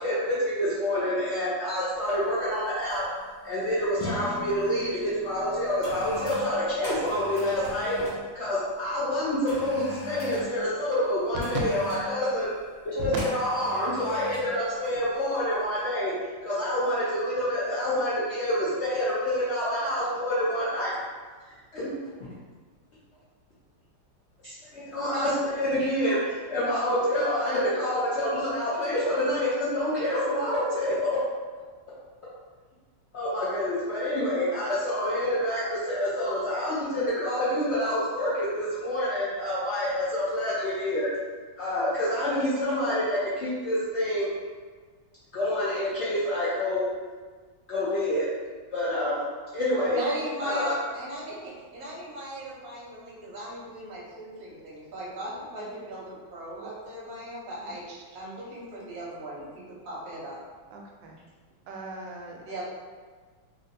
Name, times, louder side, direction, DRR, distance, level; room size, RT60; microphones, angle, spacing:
voice 1, 0.0-3.0 3.4-7.9 8.3-12.5 12.8-16.1 16.4-20.9 21.7-21.9 24.4-31.1 33.1-41.1 41.6-44.3 45.3-46.9 47.7-48.2 48.7-49.2 49.5-50.0 50.4-50.7, left 1 dB, 80° left, -10 dB, 0.6 m, -27 dB
sound 1, 2.1-2.2 2.9-3.2 3.4-4.6 5.3-8.2 9.5-10.5 11.4-12.1 13.2-14.5 14.8-15.1, left 1 dB, 50° left, 1.3 m, -40 dB
sound 2, 3.9-10.3, left 1 dB, 65° left, 1.0 m, -43 dB
voice 2, 49.9-57.8 58.1-60.4 62.4-62.6, equal, 55° right, -6 dB, 1.1 m, -38 dB
voice 3, 57.6-58.0 60.7-61.2 61.7-62.4, right 2 dB, 75° right, 0 dB, 1.2 m, -42 dB
3.2 x 2.6 x 2.6 m, 1.5 s
omnidirectional pair, 2.1 m